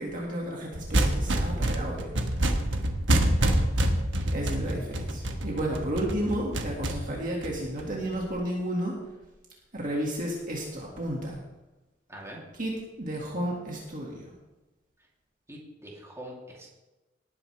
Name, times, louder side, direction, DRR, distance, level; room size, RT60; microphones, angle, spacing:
voice 1, 0.0-2.1 4.3-9.0 9.7-11.4 12.5-14.3, right 1 dB, 45° right, -2 dB, 2.0 m, -32 dB
sound 1, 0.7-8.2, right 1 dB, 70° right, 1.3 m, -27 dB
voice 2, 12.1-12.4 15.5-16.7, right 1 dB, 15° right, -3 dB, 2.9 m, -44 dB
18.5 x 9.6 x 3.3 m, 1.0 s
head